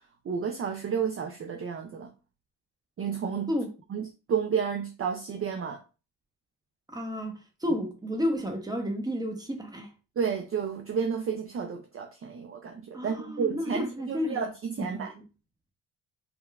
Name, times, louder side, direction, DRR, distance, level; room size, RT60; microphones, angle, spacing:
voice 1, 0.2-2.1 3.0-3.5 3.9-5.8 10.2-15.1, right 6 dB, 30° right, 0.4 m, -31 dB
voice 2, 6.9-9.9 12.9-14.5 14.8-15.1, left 1 dB, 10° right, 0.7 m, -31 dB
2.7 x 2.3 x 2.3 m
supercardioid pair, 65°, 50 cm